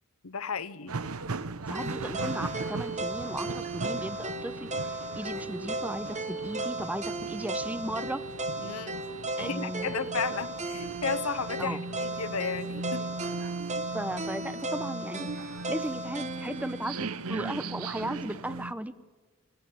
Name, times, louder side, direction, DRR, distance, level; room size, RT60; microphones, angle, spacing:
voice 1, 0.2-0.9 8.6-9.0 9.4-13.1, left 5 dB, 85° left, 0.9 m, -34 dB
sound 1, 0.9-18.7, right 3 dB, 85° right, 0.9 m, -39 dB
voice 2, 1.7-8.2 9.4-10.4 11.6-11.8 13.9-18.9, right 1 dB, 5° right, 0.8 m, -36 dB
sound 2, 1.7-17.8, right 2 dB, 35° right, 1.6 m, -36 dB
28.5 x 17.5 x 9.3 m
head